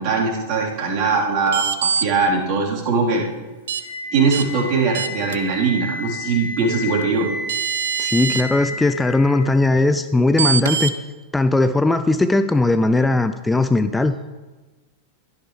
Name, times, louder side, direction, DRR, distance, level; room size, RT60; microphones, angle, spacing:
voice 1, 0.0-3.2 4.1-7.3, right 4 dB, 45° right, -4 dB, 3.8 m, -21 dB
sound 1, 1.5-2.1 3.7-3.8 4.3-4.4 4.9-5.4 7.0-7.1 7.5-8.4 10.4-10.9, right 6 dB, 65° right, 0.9 m, -23 dB
Wind instrument woodwind instrument, 3.8-9.8, left 1 dB, 55° left, 4.5 m, -32 dB
voice 2, 8.0-10.9 11.3-14.2, left 2 dB, 10° left, 10 dB, 0.5 m, -18 dB
16.5 x 13.0 x 3.3 m, 1.2 s
figure-of-eight pair, 90°, 0 cm